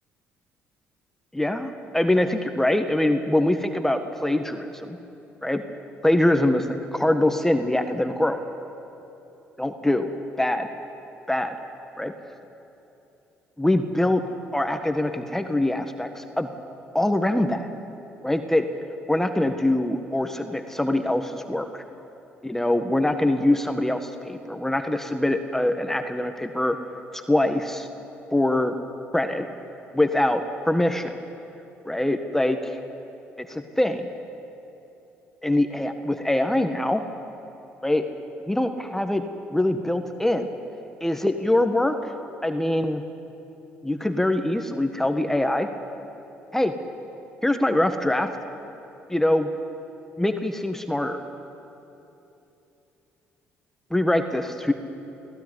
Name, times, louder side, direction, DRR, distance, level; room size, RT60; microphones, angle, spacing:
voice 1, 1.3-5.0 5.4-5.6 6.0-8.4 9.6-10.1 10.4-10.7 11.3-11.5 12.0-12.1 13.6-14.2 14.5-16.5 16.9-17.7 18.2-18.6 19.1-21.8 22.4-26.8 27.1-27.9 28.3-28.7 29.1-29.5 29.9-31.2 31.8-32.7 33.4-34.1 35.4-37.0 37.8-38.1 38.5-39.2 39.5-40.5 41.0-42.1 42.4-43.0 43.8-45.7 46.5-46.7 47.4-48.3 49.1-49.5 50.2-51.2 53.9-54.7, left 1 dB, 5° left, 6 dB, 1.5 m, -23 dB
24.0 x 16.5 x 9.7 m, 3.0 s
supercardioid pair, 65°, 5 cm